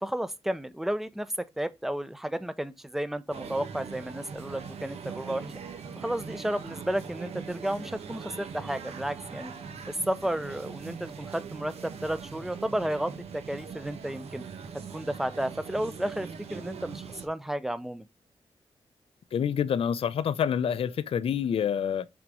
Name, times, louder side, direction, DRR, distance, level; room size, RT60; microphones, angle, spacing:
voice 1, 0.0-5.4 6.0-9.5 9.9-14.4 14.9-18.1, right 1 dB, 5° right, 0.6 m, -32 dB
sound 1, 3.3-17.3, right 6 dB, 85° right, 1.2 m, -41 dB
voice 2, 19.3-22.1, left 8 dB, 70° left, 0.5 m, -27 dB
6.1 x 4.0 x 4.7 m
wide cardioid pair, 135°, 10 cm